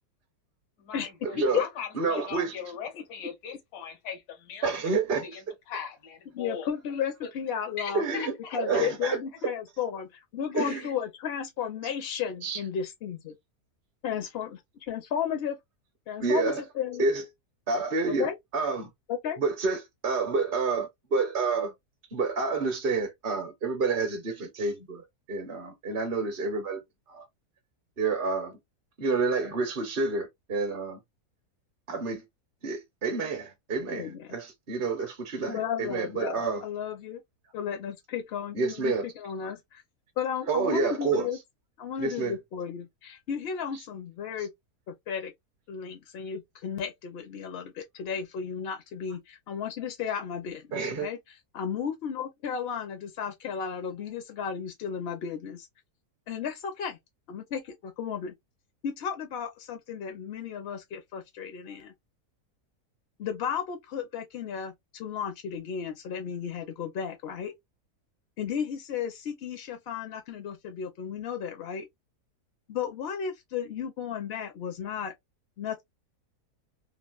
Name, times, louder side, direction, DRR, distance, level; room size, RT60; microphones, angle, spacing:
voice 1, 0.8-6.7 7.2-7.3 7.8-8.9 10.6-10.9, left 7 dB, 80° left, 1.3 m, -40 dB
voice 2, 1.3-1.6 1.9-2.5 4.6-5.2 7.9-9.2 10.5-10.8 12.4-12.6 16.2-16.6 17.0-17.2 17.7-18.9 19.4-21.7 22.1-26.8 27.1-27.2 28.0-28.6 29.0-31.0 31.9-32.2 32.6-36.6 38.5-39.0 40.5-41.3 42.0-42.4 50.7-51.1, right 4 dB, 45° right, 0.7 m, -29 dB
voice 3, 6.3-8.0 8.5-13.3 14.0-15.6 16.1-17.1 18.1-18.4 19.1-19.4 33.9-34.3 35.4-37.2 37.5-39.8 40.2-41.4 41.8-44.5 45.1-45.3 45.7-51.2 51.5-55.7 56.3-57.0 57.3-58.3 58.8-61.9 63.2-67.5 68.4-71.9 72.7-75.1 75.6-75.8, left 8 dB, 60° left, 0.6 m, -34 dB
3.2 x 2.3 x 2.3 m
omnidirectional pair, 1.7 m